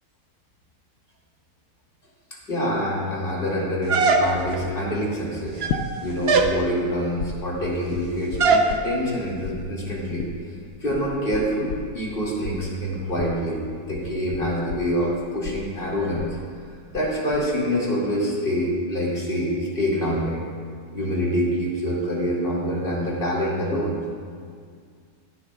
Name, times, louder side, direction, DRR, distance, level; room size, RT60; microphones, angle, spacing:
voice 1, 2.5-5.6 6.0-10.3 10.8-16.4 16.9-20.4 20.9-24.0, equal, 30° left, -5 dB, 2.4 m, -26 dB
sound 1, 3.9-4.6 5.5-5.9 6.3-6.6 8.4-8.7, right 4 dB, 55° right, 0.7 m, -19 dB
sound 2, 5.7-6.5 6.8-9.2 9.4-17.1 17.3-17.8, left 9 dB, 70° left, 0.8 m, -34 dB
16.5 x 11.0 x 2.4 m, 2.1 s
omnidirectional pair, 1.9 m